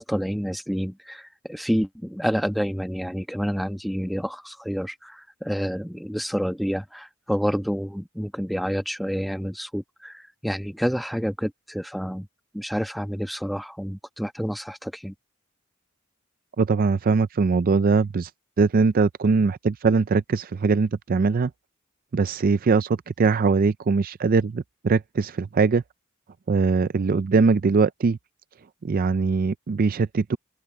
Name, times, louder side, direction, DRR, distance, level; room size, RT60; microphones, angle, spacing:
voice 1, 0.0-12.3 12.5-15.1, equal, ahead, 1.2 m, -28 dB
voice 2, 16.6-18.3 18.6-21.5 22.1-25.8 26.5-28.2 28.8-30.4, right 4 dB, 45° right, 0.4 m, -21 dB
open air
head